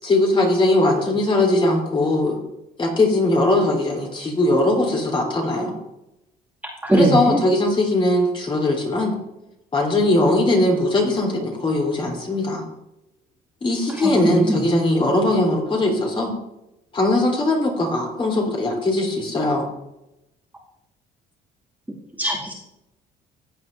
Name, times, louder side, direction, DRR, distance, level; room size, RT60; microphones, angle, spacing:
voice 1, 0.0-2.4 2.8-5.7 6.9-9.1 9.7-12.6 13.6-16.3 16.9-19.7, left 1 dB, 30° left, 0 dB, 3.3 m, -20 dB
voice 2, 6.8-7.4 14.0-14.6 22.2-22.5, right 1 dB, 10° right, -5 dB, 2.2 m, -20 dB
15.0 x 8.1 x 2.6 m, 0.88 s
cardioid pair, 110°, 17 cm